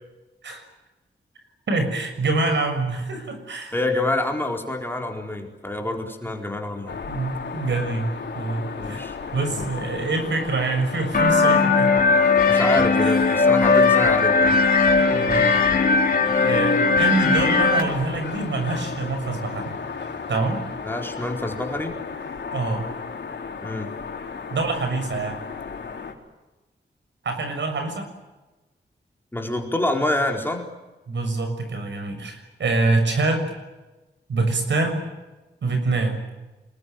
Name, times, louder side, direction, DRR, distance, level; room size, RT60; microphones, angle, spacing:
voice 1, 1.7-3.7 7.1-11.9 13.0-13.5 15.0-15.6 16.3-19.8 20.3-20.6 22.5-22.9 24.5-25.4 27.2-28.1 31.1-33.5 34.3-35.0 35.6-36.2, right 3 dB, 75° right, 6 dB, 6.6 m, -25 dB
voice 2, 3.7-7.1 8.8-9.2 9.5-9.7 12.5-14.6 20.8-21.9 23.6-23.9 29.3-30.6, left 1 dB, 10° left, 2 dB, 4.3 m, -27 dB
sound 1, 6.9-26.1, left 5 dB, 70° left, 4.2 m, -34 dB
sound 2, 11.1-17.8, left 4 dB, 50° left, 4.7 m, -18 dB
26.5 x 21.5 x 9.1 m, 1.1 s
wide cardioid pair, 145°, 19 cm